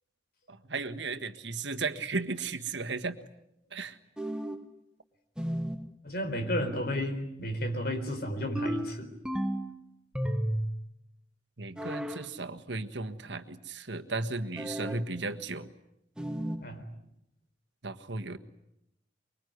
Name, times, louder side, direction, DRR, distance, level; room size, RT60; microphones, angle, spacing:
voice 1, 0.5-3.2 3.7-4.0 11.6-15.7 17.8-18.4, right 3 dB, 75° right, 7 dB, 1.6 m, -35 dB
sound 1, 4.2-4.7 5.4-5.9 8.6-9.7 10.1-10.8 11.8-12.3 14.6-15.1 16.2-16.7, right 1 dB, 5° right, 1.2 m, -33 dB
voice 2, 6.0-9.1 16.6-16.8, equal, 55° left, 6 dB, 4.2 m, -32 dB
24.5 x 23.5 x 9.6 m, 0.80 s
head